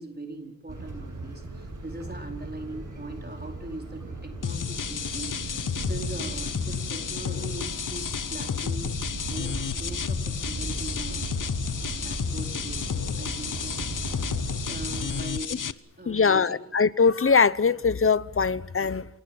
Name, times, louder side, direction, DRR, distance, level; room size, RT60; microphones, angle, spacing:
voice 1, 0.0-8.9 9.3-11.3 12.0-13.8 14.6-15.6 16.0-16.6, right 2 dB, 30° right, 4.7 m, -40 dB
sound 1, 0.7-15.2, right 2 dB, 75° right, 8.0 m, -37 dB
sound 2, 4.4-15.7, left 7 dB, 80° left, 0.9 m, -32 dB
voice 2, 16.1-19.1, left 5 dB, 45° left, 0.9 m, -22 dB
28.5 x 18.5 x 8.0 m
wide cardioid pair, 60°, 31 cm